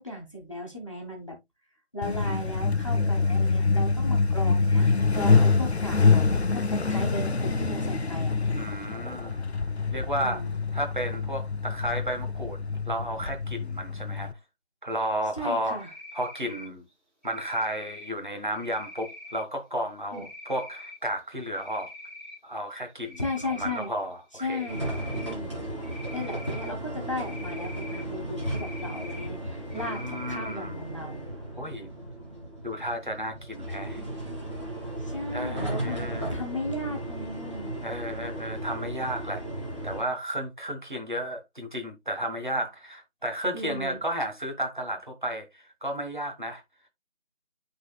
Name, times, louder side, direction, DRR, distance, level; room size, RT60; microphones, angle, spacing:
voice 1, 0.0-1.4 1.9-8.4 10.2-10.6 15.4-15.9 20.1-20.3 23.2-23.9 24.4-25.5 26.1-31.2 35.0-37.8 43.5-44.0, left 1 dB, 25° left, 1.5 m, -36 dB
Truck, 2.0-14.3, left 4 dB, 65° left, 0.7 m, -25 dB
voice 2, 8.5-9.4 9.9-10.4 10.7-12.6 12.9-14.3 14.8-16.8 17.2-21.9 22.4-24.7 29.7-30.9 31.6-31.9 32.6-34.0 35.3-36.3 37.8-39.4 39.8-46.6, right 1 dB, 45° right, 1.6 m, -33 dB
Cricket, 15.8-16.7 17.2-18.1 18.5-19.4 20.1-20.9 21.4-22.4 22.7-23.9 24.5-25.3 25.8-26.7 27.2-28.0 28.4-29.2 29.7-30.5, left 1 dB, 10° right, 3.4 m, -44 dB
sound 1, 24.7-40.0, right 1 dB, 25° right, 2.2 m, -35 dB
12.0 x 4.1 x 2.3 m
figure-of-eight pair, 170°, 35 cm